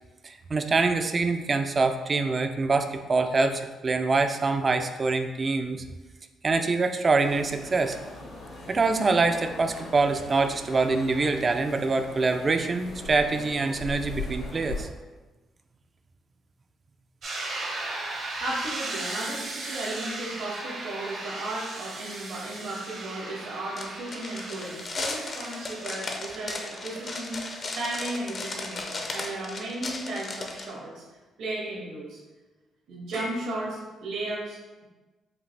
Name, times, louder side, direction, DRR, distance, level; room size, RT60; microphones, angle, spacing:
voice 1, 0.2-5.8 6.4-8.0 8.7-14.9, right 3 dB, 35° right, 7 dB, 0.3 m, -25 dB
sound 1, 7.2-14.8, left 2 dB, 80° left, 1.5 m, -40 dB
sound 2, 17.2-28.9, right 2 dB, 60° right, 0.9 m, -38 dB
voice 2, 18.4-31.0 31.4-32.2 32.9-34.8, right 2 dB, 80° right, -4 dB, 1.3 m, -35 dB
sound 3, 23.8-30.6, left 3 dB, 45° left, 0.6 m, -35 dB
5.0 x 2.4 x 3.3 m, 1.2 s
cardioid pair, 90°, 0 cm